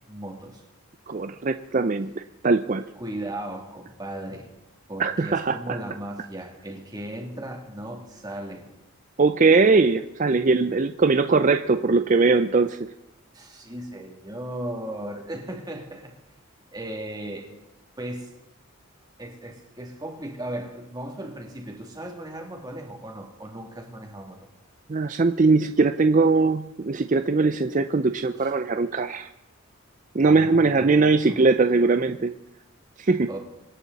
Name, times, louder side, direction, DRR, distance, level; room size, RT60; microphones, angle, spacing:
voice 1, 0.1-0.6 3.0-4.5 4.9-8.6 13.3-16.1 16.7-17.5 18.0-18.3 19.2-24.5 28.3-28.5 30.2-31.4 33.3-33.4, right 1 dB, 20° right, 1 dB, 2.7 m, -36 dB
voice 2, 1.1-2.9 5.0-5.8 9.2-12.9 24.9-29.3 30.1-32.3 33.0-33.3, right 3 dB, 35° right, 9 dB, 0.5 m, -21 dB
25.5 x 11.0 x 4.1 m, 0.93 s
head